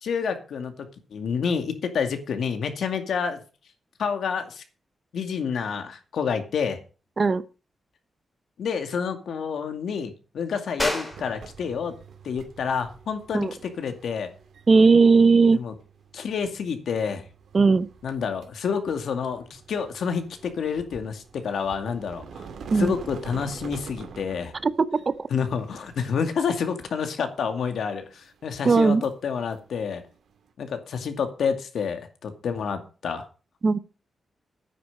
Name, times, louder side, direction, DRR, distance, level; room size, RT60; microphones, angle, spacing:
voice 1, 0.0-0.7 1.1-3.4 4.0-4.6 5.1-6.8 8.6-11.9 12.2-13.5 13.8-14.3 15.5-15.7 16.1-17.2 18.0-22.5 22.8-24.5 25.3-30.0 30.6-33.3, left 6 dB, 80° left, 2.2 m, -28 dB
sound 1, 10.8-21.0, left 1 dB, 15° left, 3.2 m, -39 dB
sound 2, 11.1-30.5, right 6 dB, 85° right, 2.3 m, -46 dB
voice 2, 14.7-15.6 17.5-17.9 22.7-22.9 24.6-25.1 28.6-29.0 33.6-33.8, right 4 dB, 35° right, 0.7 m, -18 dB
9.6 x 9.6 x 5.4 m
wide cardioid pair, 150°, 0 cm